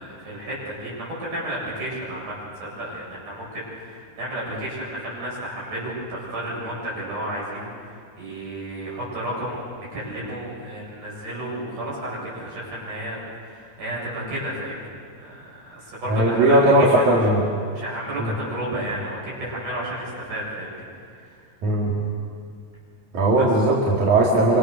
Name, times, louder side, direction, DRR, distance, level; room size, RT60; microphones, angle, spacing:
voice 1, 0.0-2.3 2.6-14.9 15.2-16.9 17.7-20.9 21.8-21.9 23.4-23.5, right 1 dB, 90° right, -5 dB, 9.3 m, -32 dB
voice 2, 16.1-17.4 18.2-18.3 21.6-21.9 23.1-24.6, right 1 dB, 70° right, -4 dB, 3.9 m, -18 dB
26.5 x 26.0 x 6.7 m, 2.3 s
omnidirectional pair, 3.5 m